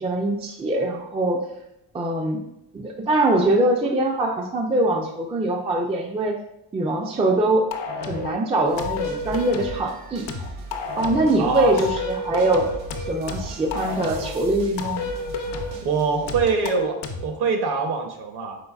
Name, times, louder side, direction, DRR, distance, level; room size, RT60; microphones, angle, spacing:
voice 1, 0.0-1.4 1.9-2.4 2.7-6.4 6.7-7.7 8.0-10.3 11.0-12.7 13.1-15.1, right 1 dB, 15° right, 2 dB, 0.3 m, -23 dB
sound 1, 7.7-8.4 8.8-9.8 10.3-11.4 11.8-14.4 14.8-15.8 16.3-17.3, left 3 dB, 70° left, 0.7 m, -31 dB
sound 2, 8.6-16.4, right 2 dB, 85° right, 1.0 m, -39 dB
voice 2, 11.4-11.7 15.8-18.6, right 5 dB, 60° right, 4 dB, 0.8 m, -24 dB
5.2 x 3.8 x 2.3 m, 0.81 s
cardioid pair, 135°, 43 cm